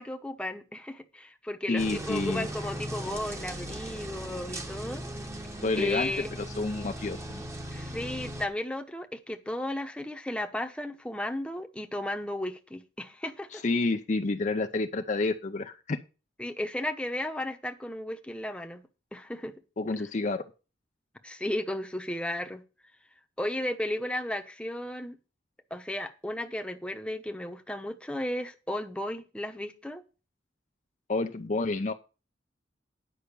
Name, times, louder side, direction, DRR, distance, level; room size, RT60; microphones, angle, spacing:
voice 1, 0.0-5.0 5.8-6.3 7.7-13.6 16.4-18.8 19.1-19.5 21.2-22.6 23.4-25.2 25.7-30.0, left 1 dB, 5° left, 1.0 m, -34 dB
voice 2, 1.7-2.5 5.6-6.1 6.4-7.5 13.5-16.0 19.8-20.4 31.1-31.9, left 3 dB, 40° left, 0.5 m, -29 dB
sound 1, 1.8-8.5, right 1 dB, 15° right, 1.1 m, -38 dB
9.9 x 5.7 x 6.9 m
head